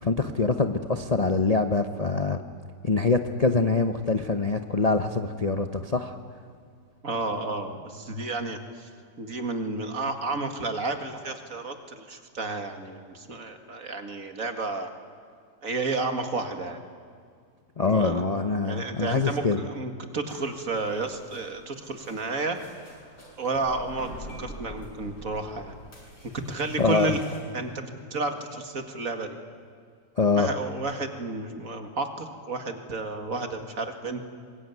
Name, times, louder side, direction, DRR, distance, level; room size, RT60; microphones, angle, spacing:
voice 1, 0.0-2.4 2.8-6.1 17.8-19.6 26.8-27.2 30.2-30.5, left 4 dB, 30° left, 6 dB, 0.7 m, -24 dB
voice 2, 7.0-8.9 9.2-14.9 15.6-16.8 17.8-18.2 18.6-22.6 23.4-24.1 24.4-25.7 26.5-27.2 27.5-29.4 30.3-34.2, right 3 dB, 50° right, 6 dB, 2.4 m, -31 dB
sound 1, 20.3-27.4, equal, 70° left, 7.7 m, -45 dB
25.0 x 21.5 x 9.6 m, 2.1 s
omnidirectional pair, 1.9 m